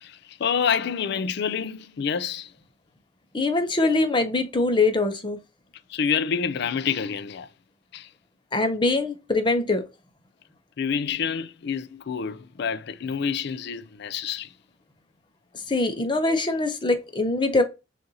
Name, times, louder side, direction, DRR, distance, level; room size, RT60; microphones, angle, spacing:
voice 1, 0.0-2.5 5.9-7.5 7.9-8.1 10.8-14.5, left 6 dB, 60° left, 0.4 m, -28 dB
voice 2, 3.3-5.4 8.5-9.8 15.7-17.6, left 2 dB, 25° left, 0.7 m, -23 dB
6.4 x 2.6 x 2.8 m
head